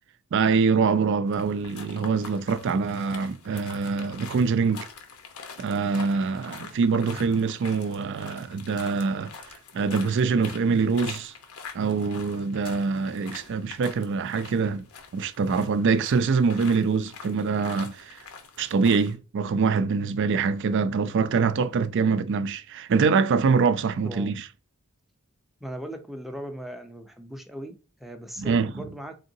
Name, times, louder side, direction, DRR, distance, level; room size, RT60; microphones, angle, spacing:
voice 1, 0.3-4.9 5.6-9.3 9.7-11.3 11.7-14.9 15.1-18.2 18.6-24.5 28.4-28.7, right 5 dB, 55° right, 0.4 m, -24 dB
sound 1, 1.3-19.1, left 5 dB, 80° left, 0.9 m, -45 dB
voice 2, 24.0-24.4 25.6-29.2, equal, ahead, 0.5 m, -39 dB
3.7 x 3.7 x 2.6 m
head